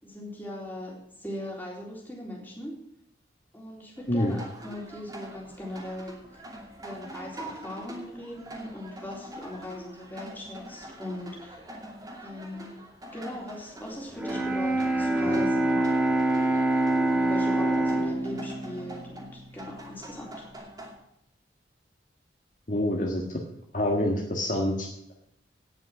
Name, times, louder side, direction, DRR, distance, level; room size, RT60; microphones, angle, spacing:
voice 1, 0.0-2.8 3.5-6.4 6.8-11.6 12.2-12.7 13.1-15.8 17.1-20.4, left 1 dB, 10° left, -3 dB, 3.8 m, -40 dB
sound 1, 4.0-20.9, right 1 dB, 20° right, 2.7 m, -44 dB
Bowed string instrument, 14.1-20.2, right 1 dB, 5° right, 1.9 m, -26 dB
voice 2, 22.7-23.4 23.7-25.1, left 1 dB, 45° left, 0 dB, 1.7 m, -27 dB
18.0 x 6.2 x 6.2 m, 0.79 s
head